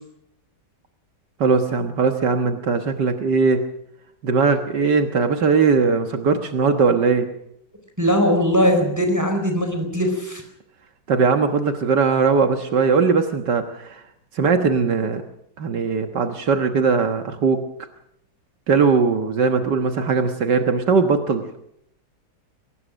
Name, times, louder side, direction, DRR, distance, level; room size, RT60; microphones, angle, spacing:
voice 1, 1.4-3.6 4.2-7.3 11.1-14.0 14.4-15.2 15.6-17.6 18.7-21.4, right 5 dB, 75° right, 6 dB, 2.0 m, -19 dB
voice 2, 8.0-10.4, equal, 10° right, 4 dB, 4.3 m, -20 dB
22.5 x 19.5 x 6.3 m, 0.75 s
omnidirectional pair, 1.9 m